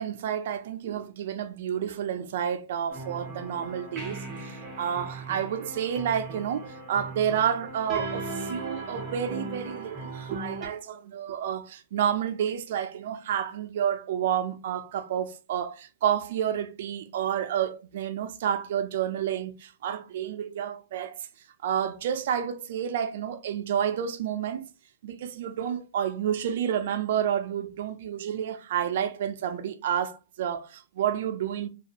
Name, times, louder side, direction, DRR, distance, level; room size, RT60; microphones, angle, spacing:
voice 1, 0.0-21.3 21.6-24.7 25.0-31.7, right 9 dB, 55° right, 0.4 m, -30 dB
sound 1, 2.9-10.7, right 3 dB, 15° right, 0.6 m, -38 dB
2.5 x 2.3 x 2.7 m
hypercardioid pair, 160°, 0 cm